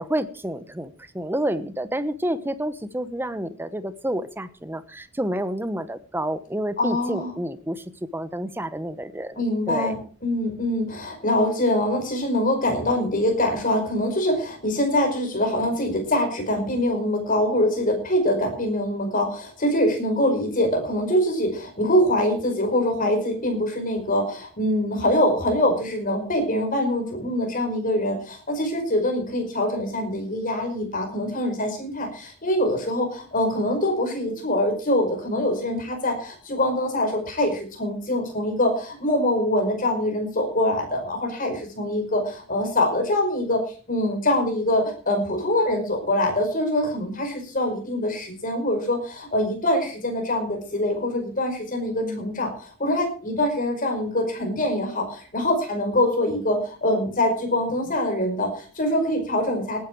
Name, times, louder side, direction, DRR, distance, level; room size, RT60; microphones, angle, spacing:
voice 1, 0.0-7.8 8.1-9.9 52.0-52.3, right 1 dB, 10° right, 13 dB, 1.0 m, -29 dB
voice 2, 6.8-7.3 9.4-43.6 43.9-59.8, left 1 dB, 40° left, 3 dB, 5.2 m, -24 dB
18.5 x 10.5 x 4.7 m, 0.39 s
head